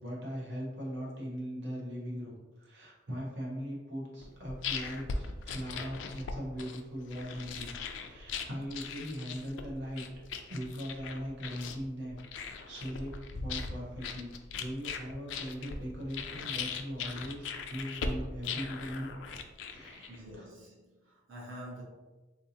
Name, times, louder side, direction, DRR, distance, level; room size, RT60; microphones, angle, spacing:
voice 1, 0.0-10.0 10.5-13.1 13.4-14.3 14.6-19.1 19.7-20.5, equal, 60° right, 0.8 m, -40 dB
sound 1, 4.2-20.3, left 5 dB, 70° left, 0.3 m, -40 dB
voice 2, 20.1-21.8, equal, 90° right, 0.8 m, -47 dB
3.6 x 2.7 x 2.7 m
head